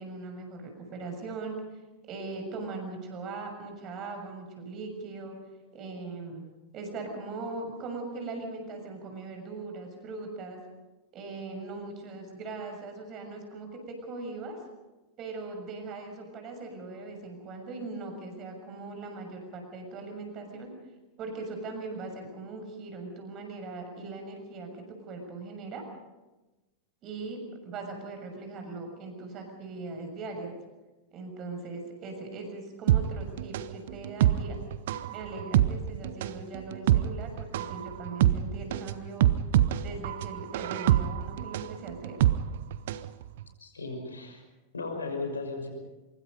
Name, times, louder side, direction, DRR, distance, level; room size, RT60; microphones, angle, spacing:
voice 1, 0.0-1.5 2.1-5.4 5.7-6.4 6.7-10.6 11.1-14.6 15.2-20.7 21.2-25.8 27.0-30.5 31.1-34.6 35.1-39.3 39.8-42.2, right 3 dB, 35° right, 4 dB, 6.6 m, -40 dB
sound 1, 32.9-43.1 43.4-43.5, right 12 dB, 55° right, 0.9 m, -26 dB
voice 2, 43.6-44.4 44.7-45.7, left 3 dB, 75° left, 4 dB, 6.1 m, -35 dB
25.0 x 23.5 x 5.4 m, 1.1 s
figure-of-eight pair, 90°, 0 cm